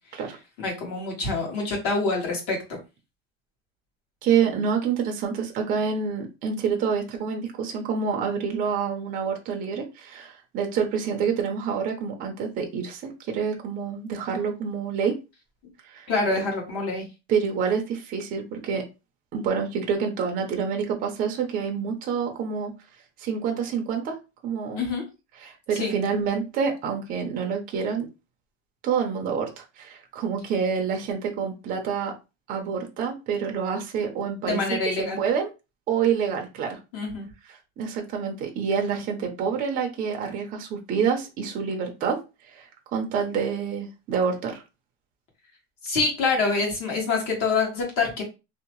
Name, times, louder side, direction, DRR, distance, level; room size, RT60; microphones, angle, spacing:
voice 1, 0.6-2.8 16.1-17.1 24.8-25.0 25.7-26.0 34.5-35.2 36.9-37.3 45.8-48.2, left 3 dB, 50° left, -1 dB, 1.3 m, -26 dB
voice 2, 4.2-15.2 15.8-16.1 17.3-18.8 19.3-22.7 23.2-24.2 24.4-24.8 25.4-28.1 28.8-32.1 32.5-34.6 35.0-35.5 35.9-36.8 37.8-42.2 42.5-44.6, right 6 dB, 30° right, 3 dB, 0.5 m, -27 dB
2.7 x 2.1 x 3.0 m, 0.28 s
cardioid pair, 170°, 31 cm